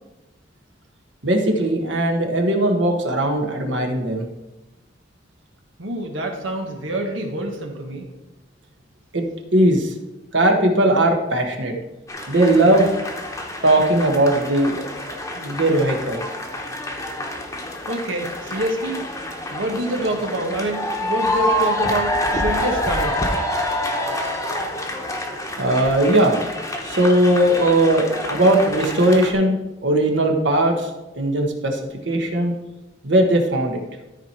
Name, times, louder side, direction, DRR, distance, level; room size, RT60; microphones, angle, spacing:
voice 1, 1.2-4.3 9.1-9.9 10.3-11.7 12.3-12.9 13.6-14.9 15.4-16.2 25.6-26.4 26.8-29.6 29.8-30.9 31.1-31.8 32.0-32.6 33.0-33.8, right 1 dB, 70° right, 3 dB, 1.3 m, -18 dB
voice 2, 5.8-8.1 17.9-19.1 19.5-23.2, right 1 dB, 90° right, 3 dB, 1.5 m, -26 dB
sound 1, 12.1-29.3, left 1 dB, 15° left, 1.0 m, -27 dB
13.5 x 4.5 x 4.3 m, 1.0 s
head